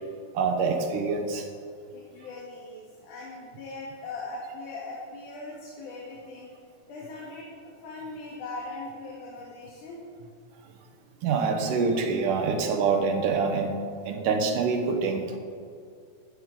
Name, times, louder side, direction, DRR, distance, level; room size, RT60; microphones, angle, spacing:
voice 1, 0.3-1.4 11.2-15.4, right 4 dB, 80° right, 4 dB, 2.7 m, -26 dB
voice 2, 1.9-6.5 6.9-10.0, left 2 dB, 75° left, -5 dB, 3.1 m, -40 dB
14.5 x 11.5 x 3.8 m, 2.3 s
omnidirectional pair, 3.7 m